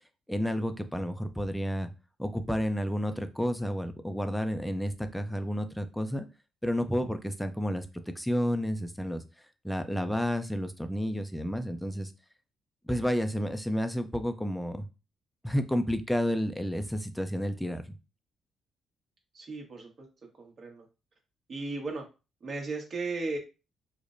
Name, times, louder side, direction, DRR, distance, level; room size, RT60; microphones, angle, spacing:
voice 1, 0.3-1.9 2.2-6.2 6.6-7.9 8.2-9.2 9.6-12.1 12.9-14.9 15.4-17.8, equal, 5° left, 8 dB, 0.5 m, -31 dB
voice 2, 19.3-20.1 20.4-20.9 21.5-22.0 22.4-23.4, right 3 dB, 50° right, 1 dB, 1.2 m, -36 dB
4.8 x 2.1 x 2.5 m, 0.30 s
cardioid pair, 90°, 0 cm